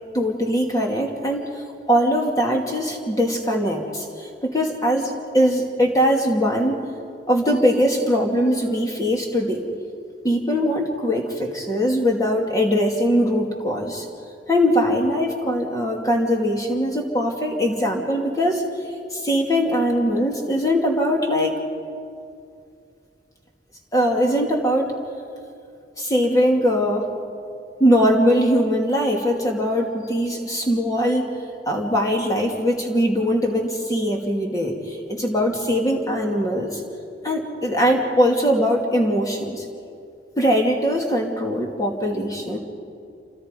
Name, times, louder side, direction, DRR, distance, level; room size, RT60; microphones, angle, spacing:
voice 1, 0.1-1.5 1.9-6.8 7.3-9.6 10.2-14.1 14.5-18.6 19.1-21.6 23.9-24.9 26.0-27.1 27.8-31.3 31.7-36.8 37.2-39.6 40.4-42.6, equal, 20° left, 0 dB, 2.7 m, -21 dB
28.5 x 26.0 x 5.4 m, 2.4 s
head